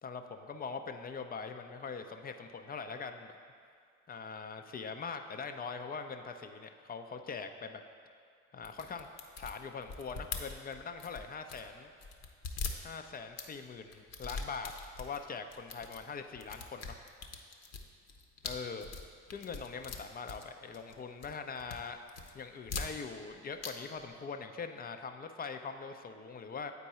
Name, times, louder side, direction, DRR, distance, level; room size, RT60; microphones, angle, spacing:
voice 1, 0.0-3.4 4.1-7.8 8.5-9.1 9.4-11.9 12.8-17.0 18.4-18.9 19.3-22.0 22.3-26.7, left 5 dB, 25° left, 7 dB, 0.5 m, -42 dB
sound 1, 8.6-11.7 12.0-13.5 13.9-15.2 15.5-16.0 16.3-20.9 21.2-21.8 22.1-23.3 23.6-23.7 24.0-24.1, left 4 dB, 45° left, 0.8 m, -42 dB
8.1 x 4.5 x 4.2 m, 2.2 s
hypercardioid pair, 60°, 38 cm